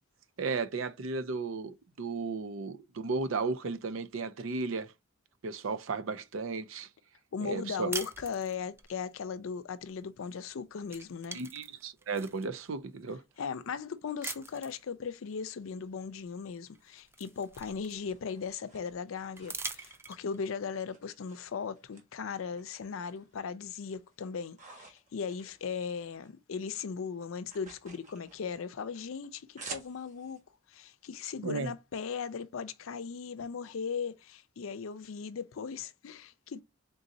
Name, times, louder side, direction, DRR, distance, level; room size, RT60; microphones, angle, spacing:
voice 1, 0.4-4.9 5.4-6.9 7.4-7.9 11.3-13.2 31.4-31.7, right 4 dB, 80° right, 0.5 m, -34 dB
voice 2, 7.3-11.4 13.4-30.4 30.7-36.6, left 6 dB, 90° left, 0.5 m, -38 dB
sound 1, 7.9-8.9 10.3-10.5 10.8-12.5 13.1-13.2 14.2-14.8 16.3-16.4 16.7-18.3 19.4-20.5, right 3 dB, 10° right, 0.3 m, -42 dB
sound 2, 17.9-20.4 20.9-22.0 22.3-23.4 23.7-26.3 26.6-30.4, right 4 dB, 40° right, 1.3 m, -51 dB
3.9 x 3.8 x 2.6 m
head